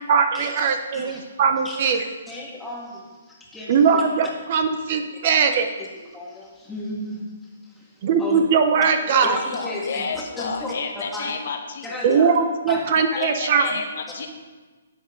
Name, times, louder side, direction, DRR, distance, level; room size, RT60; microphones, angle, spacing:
voice 1, 0.1-2.0 3.7-5.7 8.0-9.4 12.0-13.6, right 6 dB, 45° right, 7 dB, 0.8 m, -20 dB
voice 2, 1.6-4.0 5.2-5.4 6.1-8.4 9.2-10.7 11.1-11.3 11.8-12.4 12.7-12.8 14.1-14.2, left 1 dB, 5° left, -4 dB, 1.9 m, -34 dB
voice 3, 9.0-12.2 13.1-14.3, left 5 dB, 60° left, 5 dB, 1.1 m, -31 dB
11.0 x 8.0 x 3.8 m, 1.3 s
hypercardioid pair, 150°, 0 cm